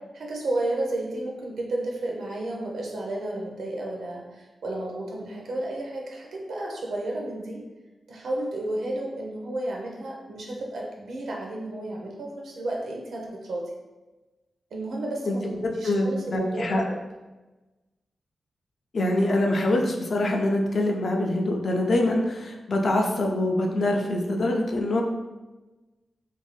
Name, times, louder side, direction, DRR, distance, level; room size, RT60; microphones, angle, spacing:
voice 1, 0.1-7.6 8.1-13.6 14.7-17.0, right 1 dB, 80° right, -1 dB, 0.5 m, -32 dB
voice 2, 15.3-16.8 18.9-25.0, left 1 dB, 45° left, 2 dB, 0.3 m, -24 dB
2.5 x 2.1 x 3.2 m, 1.1 s
wide cardioid pair, 180°, 0 cm